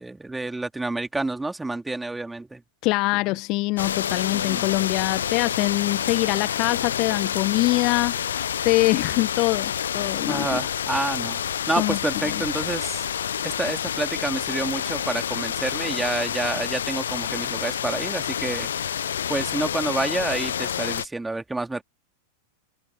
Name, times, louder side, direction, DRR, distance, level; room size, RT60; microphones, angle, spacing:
voice 1, 0.0-2.6 4.3-4.7 10.3-11.4 11.7-13.1 13.4-18.7 19.3-21.8, right 2 dB, 5° right, 3.1 m, -28 dB
voice 2, 2.8-10.6 11.8-12.0 12.3-12.4, left 22 dB, 40° left, 1.2 m, -24 dB
sound 1, 3.8-21.1, left 9 dB, 65° left, 1.1 m, -28 dB
figure-of-eight pair, 90°, 0 cm